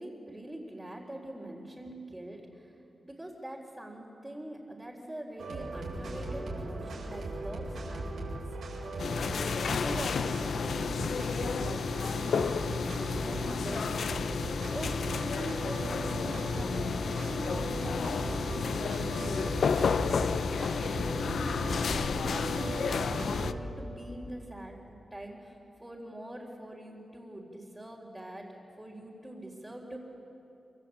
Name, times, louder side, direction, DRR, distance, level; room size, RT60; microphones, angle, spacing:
voice 1, 0.0-2.7 3.0-8.4 9.7-14.2 14.7-20.4 21.2-25.5 25.8-30.0, right 1 dB, 10° right, -5 dB, 3.9 m, -43 dB
sound 1, 5.4-23.6, right 2 dB, 90° right, 7.4 m, -38 dB
sound 2, 9.0-23.5, left 6 dB, 75° left, 0.6 m, -31 dB
26.5 x 26.0 x 8.6 m, 2.9 s
wide cardioid pair, 100°, 0 cm